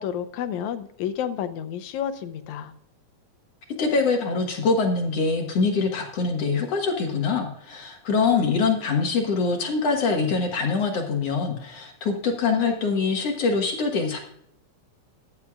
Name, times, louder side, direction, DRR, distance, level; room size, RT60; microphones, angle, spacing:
voice 1, 0.0-2.7, left 9 dB, 75° left, 9 dB, 2.1 m, -30 dB
voice 2, 3.8-14.2, left 4 dB, 60° left, 2 dB, 2.4 m, -24 dB
14.5 x 11.0 x 2.4 m, 0.68 s
omnidirectional pair, 3.5 m